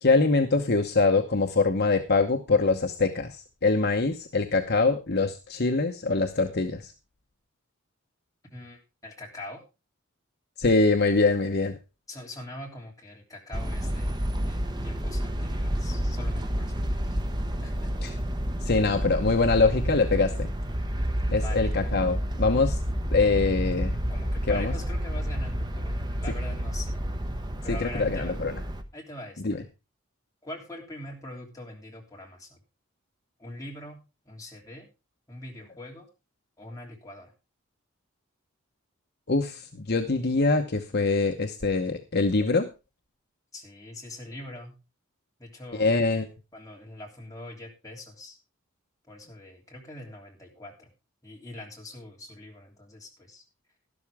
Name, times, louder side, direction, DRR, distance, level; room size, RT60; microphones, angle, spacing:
voice 1, 0.0-6.9 10.6-11.8 18.0-18.2 18.6-20.5 21.3-22.8 23.1-24.0 24.5-24.7 27.7-28.5 29.4-29.6 39.3-42.7 45.7-46.3, left 3 dB, 50° left, 5 dB, 1.0 m, -24 dB
voice 2, 8.5-9.6 12.1-17.2 17.6-17.9 21.3-21.7 24.1-27.0 27.6-28.4 28.9-29.6 30.4-32.6 33.4-34.0 34.2-34.9 35.3-36.1 36.6-37.3 43.5-44.8 45.4-45.9 46.5-48.4 49.1-50.9 51.2-53.4, left 1 dB, 15° left, -1 dB, 3.1 m, -43 dB
sound 1, 13.5-28.8, equal, 20° right, 1.0 m, -29 dB
12.0 x 12.0 x 3.5 m, 0.28 s
head